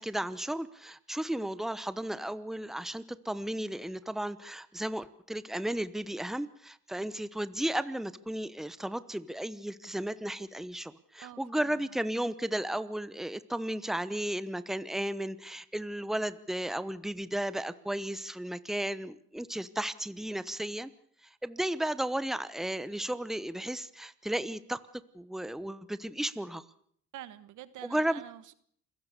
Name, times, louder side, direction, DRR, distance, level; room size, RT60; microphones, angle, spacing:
voice 1, 0.0-20.9 21.2-24.8 25.1-26.6 27.8-28.2, right 1 dB, ahead, 14 dB, 1.0 m, -34 dB
voice 2, 11.2-12.0 27.1-28.5, right 13 dB, 85° right, 15 dB, 1.3 m, -47 dB
27.5 x 16.5 x 6.8 m, 0.63 s
cardioid pair, 90°, 30 cm